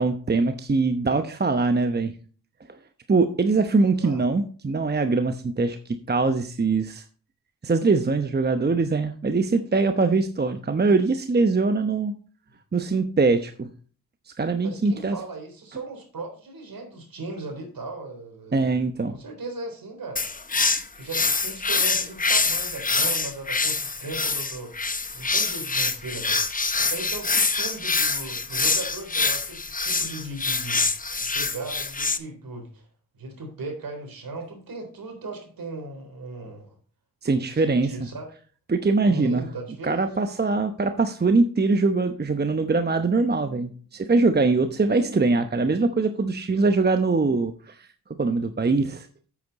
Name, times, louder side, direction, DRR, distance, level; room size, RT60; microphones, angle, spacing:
voice 1, 0.0-2.1 3.1-7.0 7.6-12.1 12.7-13.7 14.4-15.2 18.5-19.1 37.2-37.9 38.7-39.5 39.8-47.9 48.2-49.1, right 3 dB, 25° right, 8 dB, 0.9 m, -22 dB
voice 2, 14.6-18.7 19.1-20.3 20.9-24.7 25.1-26.4 26.8-30.9 31.2-32.9 33.1-36.7 37.3-38.3 39.1-40.1, right 2 dB, 60° right, 4 dB, 3.8 m, -37 dB
sound 1, 20.2-32.2, left 4 dB, 20° left, 0.9 m, -25 dB
8.3 x 8.1 x 4.1 m, 0.42 s
supercardioid pair, 45°, 39 cm